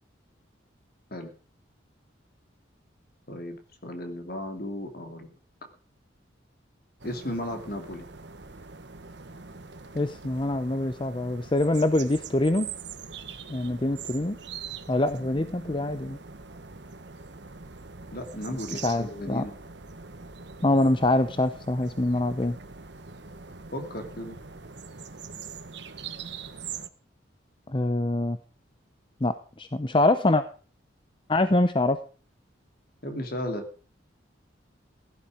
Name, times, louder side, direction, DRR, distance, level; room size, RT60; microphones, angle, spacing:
voice 1, 3.8-5.3 7.0-8.0 18.1-19.5 23.7-24.4 33.0-33.7, left 1 dB, 50° left, 5 dB, 2.9 m, -35 dB
sound 1, 7.0-26.9, right 5 dB, 60° right, 1.2 m, -43 dB
voice 2, 9.9-12.7 13.5-14.4 14.9-16.2 18.5-19.4 20.6-22.6 27.7-28.4 29.2-30.4 31.3-32.0, left 2 dB, 25° left, 11 dB, 0.7 m, -25 dB
16.0 x 11.5 x 5.0 m, 0.39 s
head